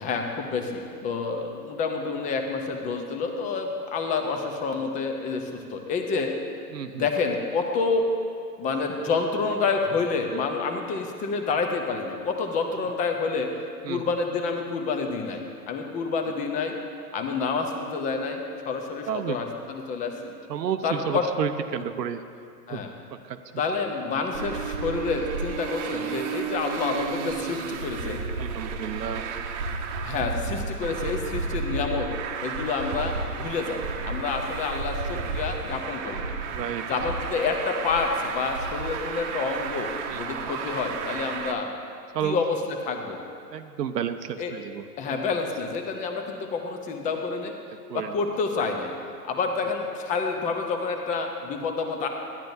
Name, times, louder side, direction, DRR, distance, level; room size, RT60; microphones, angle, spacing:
voice 1, 0.0-6.3 6.9-8.0 8.6-13.5 13.9-16.7 17.1-20.3 20.8-21.3 22.7-22.9 23.6-28.2 30.0-32.1 32.4-36.3 36.9-41.7 42.2-42.6 42.8-43.2 44.4-44.5 45.0-47.5 47.9-48.9 49.2-52.1, left 4 dB, 15° left, 4 dB, 0.6 m, -28 dB
voice 2, 6.7-7.1 13.8-14.0 19.1-19.4 20.5-22.2 22.7-22.8 23.2-23.4 28.4-29.2 35.1-35.3 36.5-36.8 40.1-40.2 42.1-42.4 43.5-45.2 47.9-48.1, right 9 dB, 85° right, 9 dB, 0.7 m, -31 dB
Traffic noise roadway noise, 24.3-41.5, right 5 dB, 50° right, 0.9 m, -32 dB
13.5 x 10.5 x 2.6 m, 2.4 s
hypercardioid pair, 125°, 48 cm